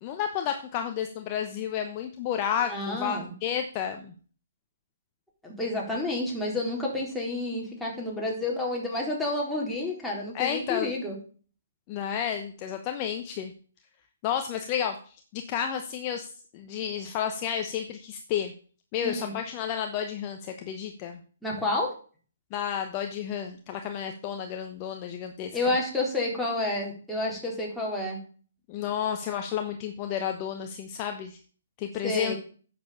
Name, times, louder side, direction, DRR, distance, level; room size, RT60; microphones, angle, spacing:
voice 1, 0.0-4.1 10.3-10.9 11.9-13.5 14.2-18.5 18.9-21.2 22.5-25.6 28.7-31.4 31.8-32.3, left 9 dB, 30° left, 5 dB, 1.0 m, -31 dB
voice 2, 2.7-3.3 5.4-11.2 19.0-19.3 21.4-21.9 25.5-28.2 32.0-32.4, left 2 dB, ahead, -4 dB, 3.8 m, -30 dB
10.0 x 7.0 x 6.8 m, 0.42 s
figure-of-eight pair, 135°, 0 cm